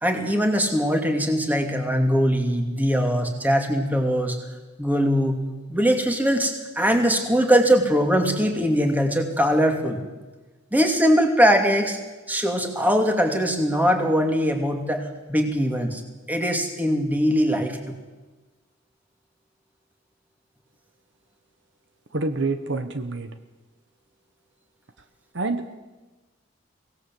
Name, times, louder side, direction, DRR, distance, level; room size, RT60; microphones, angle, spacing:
voice 1, 0.0-4.4 4.8-5.4 5.7-10.0 10.7-12.0 12.3-16.0 16.3-17.8, equal, 10° right, 4 dB, 2.7 m, -21 dB
voice 2, 22.1-23.3 25.3-25.8, right 3 dB, 60° right, 9 dB, 1.2 m, -27 dB
24.0 x 18.0 x 7.8 m, 1.2 s
head